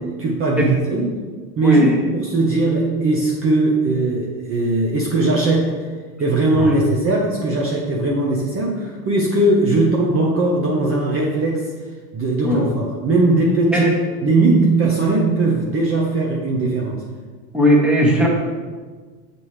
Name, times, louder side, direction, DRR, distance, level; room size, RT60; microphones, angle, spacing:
voice 1, 0.2-1.2 1.6-5.7 6.2-11.7 12.1-13.9 14.2-17.0, right 2 dB, 30° right, -2 dB, 0.9 m, -19 dB
voice 2, 1.6-2.0 12.4-12.6 13.7-13.9 17.5-18.3, equal, ahead, -2 dB, 1.3 m, -16 dB
7.1 x 4.3 x 3.3 m, 1.5 s
hypercardioid pair, 95°, 47 cm